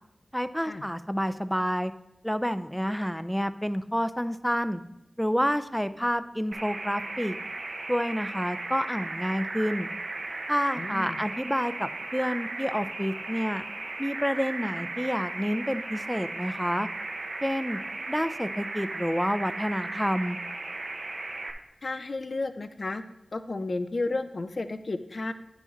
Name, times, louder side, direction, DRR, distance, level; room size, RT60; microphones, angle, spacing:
voice 1, 0.3-1.9 2.2-4.8 5.2-7.4 7.9-9.9 10.5-13.6 14.0-16.9 17.4-17.8 18.1-20.4, equal, 5° left, 12 dB, 0.4 m, -29 dB
sound 1, 6.5-21.5, right 2 dB, 75° right, 0.7 m, -36 dB
voice 2, 10.8-11.2 21.8-23.0 23.3-25.3, left 2 dB, 60° left, 10 dB, 0.5 m, -32 dB
9.5 x 4.9 x 4.0 m, 0.84 s
cardioid pair, 40°, 0 cm